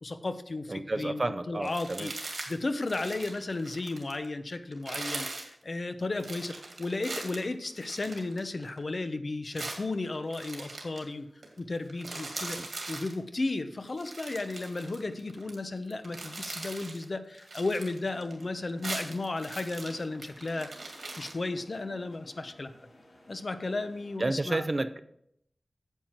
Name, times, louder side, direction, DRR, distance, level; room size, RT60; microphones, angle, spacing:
voice 1, 0.0-2.1 2.5-11.3 11.6-12.6 12.9-22.7 23.3-24.6, left 2 dB, 50° left, 0.7 m, -34 dB
voice 2, 0.7-2.1 12.6-12.7 24.2-25.0, right 2 dB, 35° right, 0.5 m, -31 dB
sound 1, 1.6-2.5 2.8-4.3 4.7-5.5 6.2-8.8 9.6-11.0 11.4-11.6 11.9-13.1 13.9-15.6 15.9-17.0 17.4-18.4 18.7-21.3, right 3 dB, 70° right, 2.2 m, -40 dB
sound 2, 18.1-24.2, left 1 dB, 75° left, 3.7 m, -57 dB
9.1 x 7.5 x 4.4 m
wide cardioid pair, 95°, 0 cm